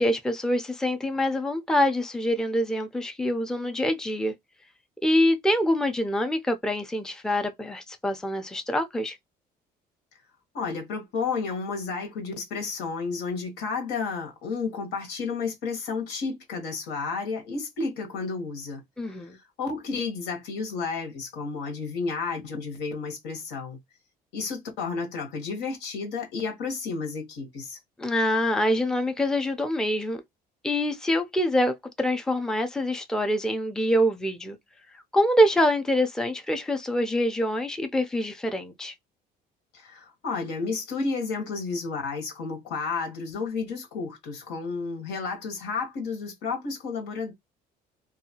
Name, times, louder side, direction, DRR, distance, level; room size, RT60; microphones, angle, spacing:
voice 1, 0.0-4.3 5.0-9.2 19.0-19.4 28.0-30.2 30.6-34.6 35.1-38.9, equal, 5° left, 0.4 m, -25 dB
voice 2, 10.5-18.8 19.6-23.8 24.3-27.8 39.7-47.3, left 4 dB, 85° left, 1.1 m, -31 dB
2.7 x 2.4 x 2.7 m
cardioid pair, 110°, 17 cm